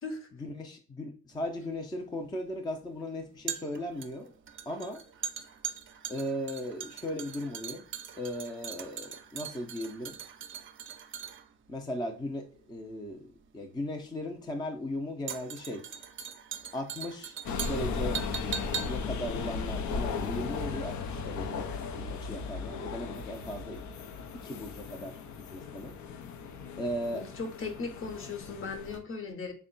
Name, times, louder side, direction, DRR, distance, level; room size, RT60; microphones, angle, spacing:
voice 1, 0.4-4.3 4.7-5.0 6.1-7.8 8.1-10.2 11.7-13.2 13.5-15.8 16.7-17.4 17.6-18.2 18.9-21.7 21.9-23.9 24.4-25.2 25.5-26.0 26.8-27.2, left 1 dB, 15° left, 2 dB, 0.5 m, -37 dB
sound 1, 1.3-20.6 20.9-21.0, right 7 dB, 45° right, 0.5 m, -41 dB
sound 2, 17.5-29.0, left 5 dB, 70° left, 0.6 m, -36 dB
voice 2, 27.1-29.5, left 4 dB, 45° left, 5 dB, 0.9 m, -38 dB
3.5 x 2.2 x 3.8 m, 0.42 s
cardioid pair, 90°, 30 cm